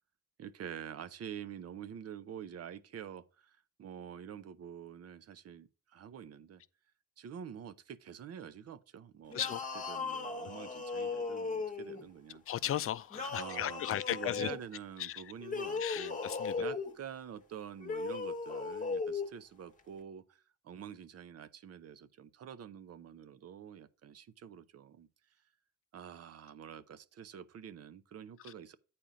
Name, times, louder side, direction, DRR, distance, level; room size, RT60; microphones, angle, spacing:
voice 1, 0.4-6.6 7.2-9.5 9.9-12.4 13.4-16.2 16.6-25.1 25.9-28.8, right 8 dB, 55° right, 0.7 m, -47 dB
sound 1, 9.3-12.0 13.1-14.6 15.4-16.9 17.8-19.3, left 4 dB, 25° left, 1.0 m, -37 dB
voice 2, 12.5-14.5 15.0-15.3 15.8-16.5, left 12 dB, 50° left, 0.5 m, -36 dB
8.8 x 4.3 x 5.0 m
cardioid pair, 90°, 30 cm